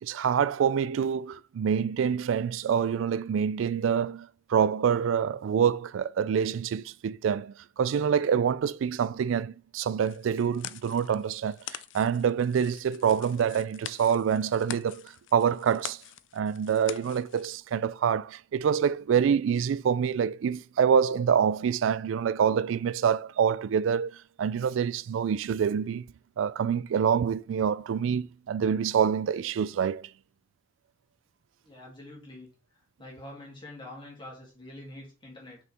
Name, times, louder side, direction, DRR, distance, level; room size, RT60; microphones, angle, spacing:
voice 1, 0.0-16.0 16.3-26.1 26.4-30.1, right 7 dB, 80° right, 0.3 m, -26 dB
sound 1, 10.0-17.6, left 11 dB, 75° left, 0.4 m, -45 dB
voice 2, 31.6-32.5 33.0-35.6, left 1 dB, 25° left, 2.8 m, -45 dB
6.1 x 5.5 x 3.5 m
head